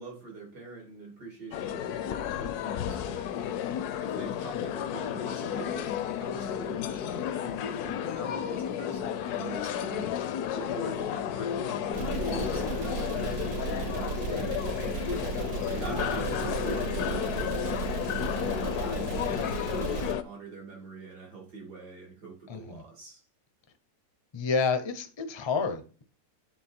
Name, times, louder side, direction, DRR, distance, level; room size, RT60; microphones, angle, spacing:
voice 1, 0.0-3.3 4.0-10.1 10.5-13.4 13.8-14.2 15.7-18.2 18.7-23.2, right 4 dB, 85° right, 3.2 m, -43 dB
sound 1, 1.5-20.2, left 9 dB, 75° left, 1.1 m, -32 dB
sound 2, 11.9-20.1, right 8 dB, 65° right, 0.9 m, -35 dB
voice 2, 14.3-14.6 15.8-16.1 22.5-22.8 24.3-26.0, left 5 dB, 40° left, 0.4 m, -31 dB
9.3 x 3.5 x 4.4 m
omnidirectional pair, 1.7 m